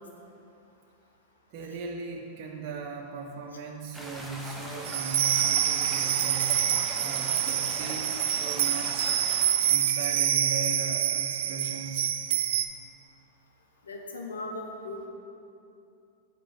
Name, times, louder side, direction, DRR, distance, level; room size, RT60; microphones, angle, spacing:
voice 1, 1.5-6.7 7.0-9.1 9.6-12.2, right 3 dB, 50° right, 1 dB, 0.7 m, -38 dB
sound 1, 3.9-9.6, right 1 dB, 5° right, 1.0 m, -40 dB
sound 2, 4.8-12.6, right 10 dB, 70° right, 0.3 m, -26 dB
voice 2, 13.8-15.0, left 2 dB, 90° left, 1 dB, 0.8 m, -37 dB
6.0 x 5.1 x 5.0 m, 2.7 s
hypercardioid pair, 105°, 0 cm